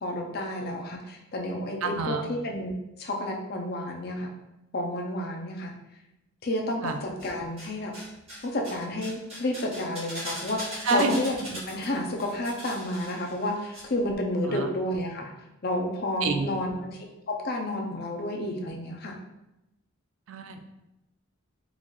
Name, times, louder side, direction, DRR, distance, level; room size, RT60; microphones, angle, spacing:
voice 1, 0.0-2.7 3.0-4.3 4.7-5.7 6.4-7.9 8.4-15.3 15.6-19.2, left 1 dB, 45° left, 1 dB, 0.5 m, -31 dB
voice 2, 1.8-2.2 6.8-7.0 10.8-11.1 14.5-14.7 16.2-16.5 20.3-20.6, right 4 dB, 75° right, 7 dB, 0.4 m, -27 dB
sound 1, 6.9-7.7 7.9-13.8 14.1-14.2, equal, 30° right, 1.2 m, -40 dB
3.9 x 2.4 x 3.1 m, 0.91 s
head